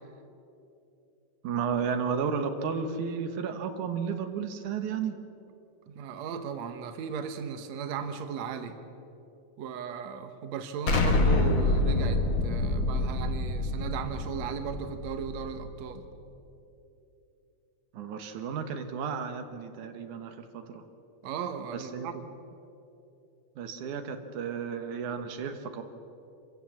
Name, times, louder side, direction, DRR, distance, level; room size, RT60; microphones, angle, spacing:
voice 1, 1.4-5.2 17.9-20.8 21.7-22.1 23.6-25.8, right 6 dB, 85° right, 7 dB, 2.7 m, -33 dB
voice 2, 5.9-8.8 9.6-16.1 21.2-22.1, right 7 dB, 70° right, 8 dB, 2.3 m, -36 dB
Explosion, 10.9-15.7, left 2 dB, 45° left, 1.9 m, -27 dB
26.5 x 15.5 x 7.3 m, 2.9 s
omnidirectional pair, 3.4 m